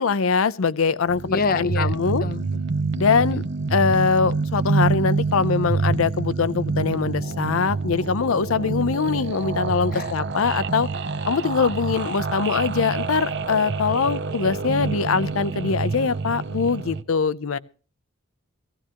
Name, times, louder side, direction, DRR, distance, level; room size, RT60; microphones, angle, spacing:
voice 1, 0.0-2.2 2.9-3.4 3.7-10.9 11.3-17.6, left 5 dB, 90° left, 17 dB, 0.6 m, -22 dB
sound 1, 1.1-17.0, right 4 dB, 60° right, 0.7 m, -27 dB
voice 2, 1.3-2.6 9.9-10.1, left 4 dB, 45° left, 15 dB, 0.6 m, -27 dB
17.5 x 16.5 x 2.9 m, 0.37 s
head